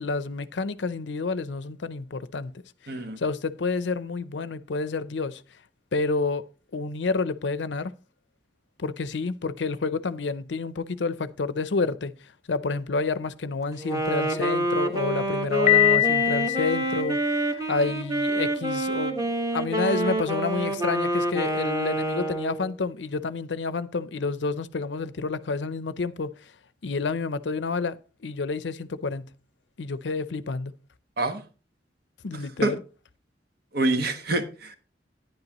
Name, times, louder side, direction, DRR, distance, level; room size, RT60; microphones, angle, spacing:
voice 1, 0.0-2.5 3.2-5.4 5.9-6.4 6.7-7.9 8.8-12.1 12.5-17.2 17.5-26.3 26.8-28.0 28.2-29.3 29.8-30.7 32.2-32.8, left 4 dB, 85° left, 0.6 m, -29 dB
voice 2, 2.9-3.2 31.2-31.4 32.6-32.7 33.7-34.8, right 2 dB, 60° right, 1.3 m, -26 dB
Wind instrument woodwind instrument, 13.8-22.7, right 1 dB, 20° right, 1.5 m, -27 dB
Piano, 15.7-17.6, left 14 dB, 40° left, 0.4 m, -23 dB
10.5 x 10.0 x 3.0 m
head